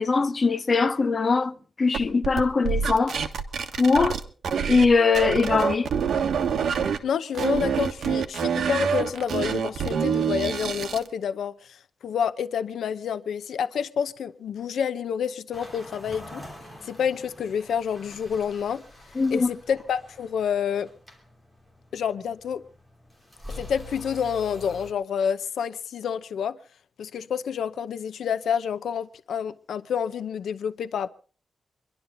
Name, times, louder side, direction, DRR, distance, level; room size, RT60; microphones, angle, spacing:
voice 1, 0.0-1.5 1.8-3.2 3.8-4.2 4.7-5.9 19.2-19.5, left 4 dB, 35° left, 0.7 m, -21 dB
sound 1, 1.9-4.9 5.2-7.0 7.4-11.1, right 7 dB, 75° right, 1.4 m, -26 dB
voice 2, 7.0-16.4 16.8-18.8 19.3-20.9 21.9-22.6 23.6-26.6 27.0-31.1, left 7 dB, 90° left, 0.7 m, -28 dB
sound 2, 15.5-24.9, left 1 dB, ahead, 3.1 m, -45 dB
26.0 x 11.5 x 3.9 m
wide cardioid pair, 150°, 0 cm